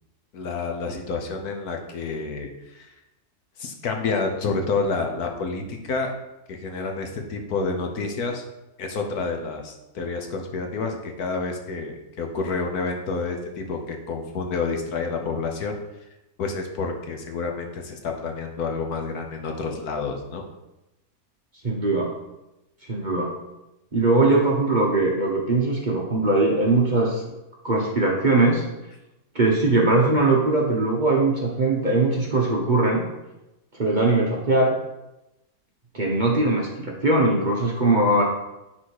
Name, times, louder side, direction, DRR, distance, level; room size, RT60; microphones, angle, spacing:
voice 1, 0.3-2.9 3.6-6.1 6.5-8.4 8.8-15.8 16.4-20.4, left 4 dB, 65° left, 3 dB, 1.4 m, -29 dB
voice 2, 21.6-22.2 22.9-23.4 23.9-27.2 27.6-28.6 29.3-33.0 33.8-34.7 35.9-38.2, right 2 dB, 30° right, -2 dB, 1.1 m, -21 dB
10.0 x 4.1 x 4.8 m, 0.96 s
omnidirectional pair, 1.8 m